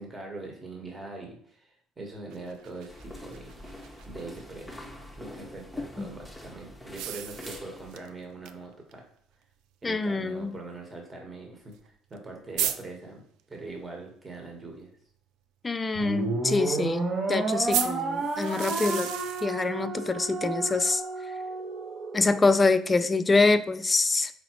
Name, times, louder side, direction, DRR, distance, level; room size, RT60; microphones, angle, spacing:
voice 1, 0.0-3.6 4.1-4.8 5.1-9.1 9.8-13.2 13.5-14.9, right 2 dB, 25° right, 1 dB, 1.3 m, -42 dB
sound 1, 2.3-4.4 6.9-8.1 8.4-8.5 8.9-9.0 9.9-10.0 11.8-11.9 12.1-12.2 12.6-12.8 17.7-19.5, right 10 dB, 65° right, 0.3 m, -33 dB
sound 2, 2.9-8.0, left 1 dB, ahead, 0.8 m, -45 dB
voice 2, 9.8-10.6 15.6-19.1 19.4-21.0 22.1-24.3, left 3 dB, 25° left, 11 dB, 0.4 m, -25 dB
sound 3, 15.9-22.4, right 3 dB, 45° right, 0.9 m, -31 dB
4.6 x 3.9 x 3.0 m, 0.65 s
hypercardioid pair, 55°, 0 cm